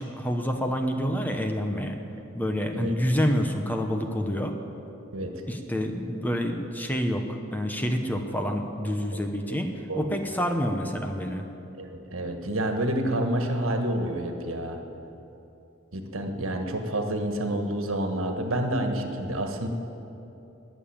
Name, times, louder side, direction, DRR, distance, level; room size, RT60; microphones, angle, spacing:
voice 1, 0.0-2.0 2.3-4.6 5.5-11.5, equal, 10° left, 4 dB, 1.0 m, -28 dB
voice 2, 11.8-14.8 15.9-19.7, right 1 dB, 85° right, 5 dB, 1.5 m, -28 dB
20.5 x 7.2 x 8.7 m, 3.0 s
head